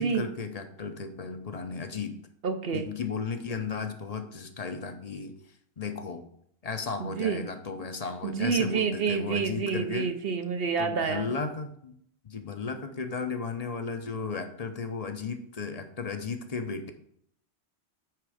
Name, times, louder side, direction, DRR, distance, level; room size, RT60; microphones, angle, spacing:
voice 1, 0.0-2.2 2.7-5.3 5.8-6.2 6.6-10.1 10.8-11.9 12.2-16.9, left 5 dB, 40° left, 7 dB, 0.7 m, -35 dB
voice 2, 2.4-2.9 7.0-7.4 8.2-11.3, right 6 dB, 60° right, 7 dB, 0.9 m, -28 dB
9.2 x 3.6 x 5.0 m, 0.68 s
omnidirectional pair, 1.1 m